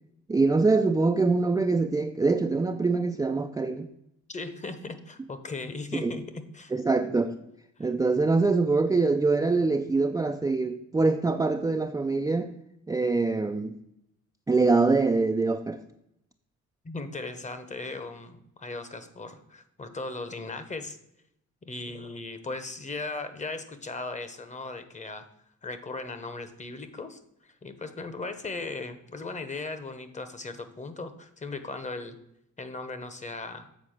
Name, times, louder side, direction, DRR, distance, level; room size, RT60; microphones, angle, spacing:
voice 1, 0.3-3.9 6.0-6.1 6.7-7.3 7.8-12.5 12.9-13.7 14.5-15.8, right 3 dB, 10° right, 5 dB, 0.4 m, -24 dB
voice 2, 4.3-6.7 7.8-7.9 16.8-21.0 21.6-25.3 25.6-32.2 32.6-33.7, left 3 dB, 25° left, 10 dB, 0.9 m, -37 dB
7.5 x 4.1 x 6.5 m, 0.77 s
cardioid pair, 90°, 30 cm